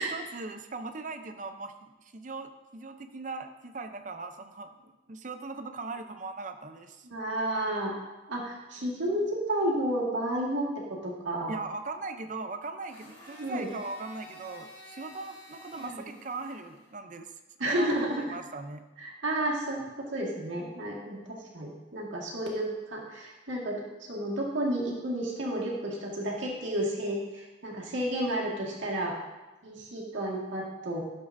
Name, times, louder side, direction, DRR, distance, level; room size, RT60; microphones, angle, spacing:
voice 1, 0.0-7.1 11.5-17.3 17.6-18.8, right 3 dB, 40° right, 8 dB, 0.6 m, -39 dB
voice 2, 7.0-7.9 8.3-11.5 13.4-13.7 15.8-16.0 17.6-18.2 19.0-23.8 24.1-29.2 29.6-31.0, right 1 dB, 75° right, -3 dB, 1.9 m, -31 dB
Domestic sounds home sounds, 12.9-16.9, left 1 dB, 25° left, 1.9 m, -50 dB
11.5 x 7.3 x 2.6 m, 1.1 s
head